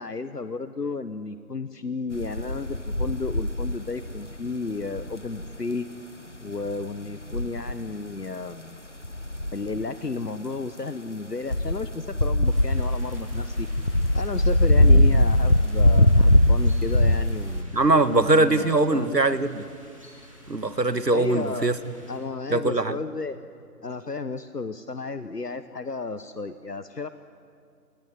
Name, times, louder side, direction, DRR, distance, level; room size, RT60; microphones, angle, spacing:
voice 1, 0.0-5.9 6.4-8.8 9.5-13.7 14.1-17.8 18.1-19.2 21.1-21.7 22.1-23.4 23.8-27.1, left 3 dB, 70° left, 11 dB, 1.2 m, -33 dB
sound 1, 2.1-4.4 4.8-5.6 6.7-6.8 7.3-7.9 9.0-9.8 11.5-17.6, left 1 dB, 45° left, 0.8 m, -21 dB
sound 2, 12.4-22.2, equal, 20° right, 3.3 m, -50 dB
voice 2, 17.7-19.6 20.5-21.8 22.5-23.0, right 2 dB, 80° right, 12 dB, 1.7 m, -21 dB
27.5 x 20.5 x 9.9 m, 2.3 s
figure-of-eight pair, 180°, 49 cm